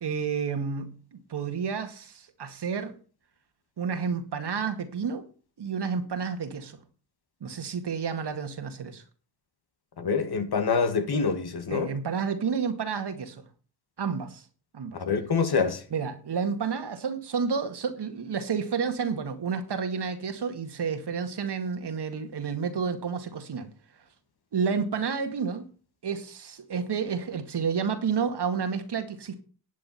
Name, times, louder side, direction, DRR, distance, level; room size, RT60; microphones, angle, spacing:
voice 1, 0.0-2.9 3.8-5.2 5.6-6.8 7.4-9.0 11.7-13.4 14.0-14.4 14.7-15.0 15.9-23.7 24.5-25.6 26.0-29.4, right 6 dB, 55° right, 2.1 m, -30 dB
voice 2, 10.0-11.9 14.9-15.8, left 5 dB, 50° left, 2.1 m, -26 dB
11.0 x 7.7 x 5.8 m
supercardioid pair, 50°, 49 cm